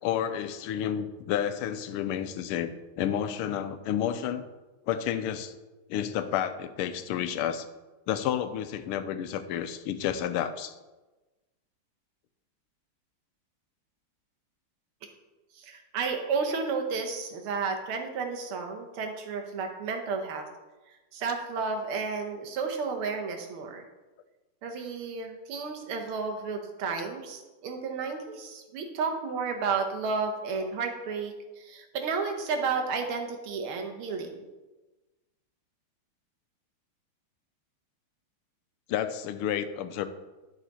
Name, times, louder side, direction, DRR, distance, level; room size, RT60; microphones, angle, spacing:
voice 1, 0.0-4.4 4.9-5.5 5.9-7.7 8.1-10.7 38.9-40.1, left 10 dB, 85° left, 11 dB, 1.5 m, -30 dB
voice 2, 15.5-20.5 20.9-23.8 24.6-34.5, right 5 dB, 80° right, 4 dB, 1.8 m, -32 dB
11.0 x 4.9 x 4.1 m, 1.1 s
omnidirectional pair, 2.4 m